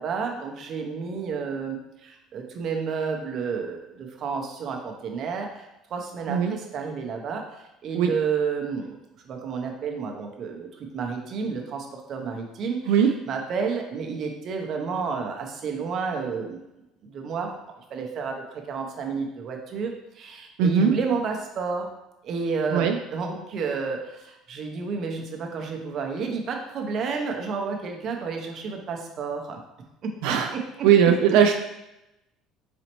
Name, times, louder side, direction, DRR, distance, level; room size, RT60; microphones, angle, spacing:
voice 1, 0.0-9.0 9.2-16.6 17.0-17.5 17.9-21.9 22.2-29.6 30.0-30.9, right 5 dB, 40° right, 2 dB, 0.6 m, -31 dB
voice 2, 20.6-20.9 22.7-22.9 30.2-30.5 30.8-31.5, right 8 dB, 80° right, 4 dB, 0.3 m, -19 dB
4.2 x 3.9 x 3.0 m, 0.91 s
cardioid pair, 165°, 0 cm